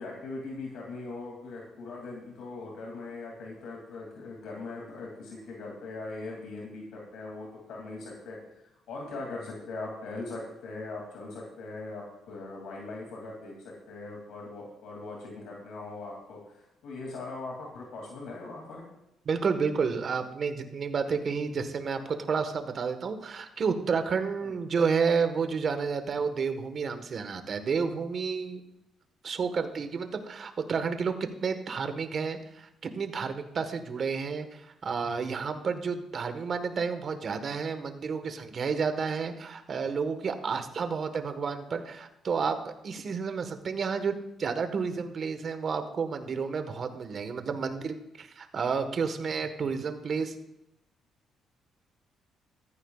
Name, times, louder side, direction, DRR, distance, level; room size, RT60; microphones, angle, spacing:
voice 1, 0.0-8.4 8.9-18.8 24.4-24.5, left 3 dB, 80° left, -2 dB, 2.7 m, -40 dB
voice 2, 19.2-28.6 29.2-50.4, right 5 dB, 50° right, 8 dB, 1.4 m, -31 dB
15.0 x 13.5 x 2.4 m, 0.86 s
cardioid pair, 90°, 0 cm